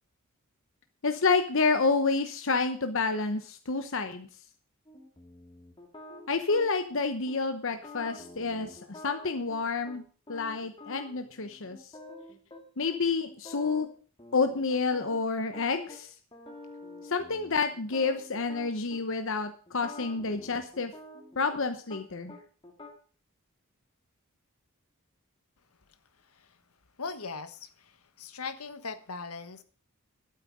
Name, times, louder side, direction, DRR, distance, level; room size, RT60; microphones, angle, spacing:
voice 1, 1.0-4.3 6.3-10.0 10.3-11.9 12.8-13.9 14.3-16.1 17.0-20.9 21.4-22.4, left 4 dB, 60° left, 8 dB, 1.0 m, -29 dB
sound 1, 4.9-7.0 7.3-7.4 7.7-10.0 10.3-12.6 12.9-13.0 13.3-13.9 14.2-16.0 16.3-19.0 19.7-22.0 22.3-22.9, left 2 dB, 20° left, 2.3 m, -47 dB
voice 2, 27.0-29.6, left 4 dB, 75° left, 11 dB, 1.3 m, -40 dB
12.5 x 9.0 x 6.3 m, 0.42 s
head